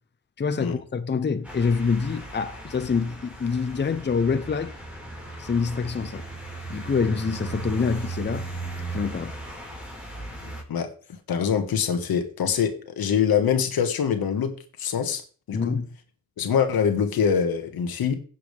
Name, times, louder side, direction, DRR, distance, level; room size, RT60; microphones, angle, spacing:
voice 1, 0.4-4.7 5.4-6.2 6.7-8.5 8.9-9.3 15.5-15.8, left 5 dB, 30° left, 0.8 m, -26 dB
sound 1, 1.4-10.6, right 3 dB, 5° right, 4.9 m, -37 dB
voice 2, 11.3-15.2 15.5-15.8 16.4-18.2, left 7 dB, 85° left, 1.8 m, -24 dB
16.0 x 7.7 x 3.5 m
cardioid pair, 90°, 35 cm